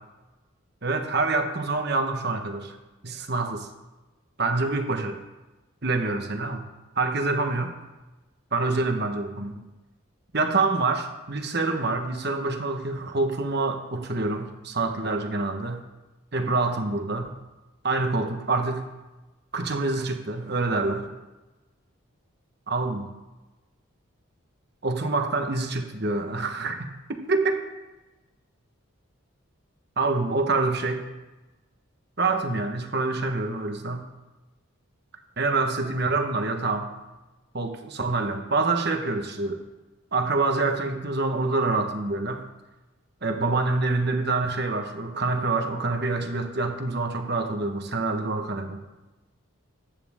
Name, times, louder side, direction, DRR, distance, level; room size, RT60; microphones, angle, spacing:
voice 1, 0.8-2.8 3.0-3.7 4.4-5.2 5.8-6.7 6.9-7.7 8.5-9.6 10.3-15.8 16.3-17.3 17.8-18.8 19.5-21.1 22.7-23.1 24.8-27.6 30.0-31.0 32.2-34.1 35.4-36.9 37.5-39.6 40.1-42.4 43.2-48.8, right 3 dB, 50° right, 5 dB, 1.3 m, -26 dB
14.5 x 10.5 x 3.7 m, 1.1 s
head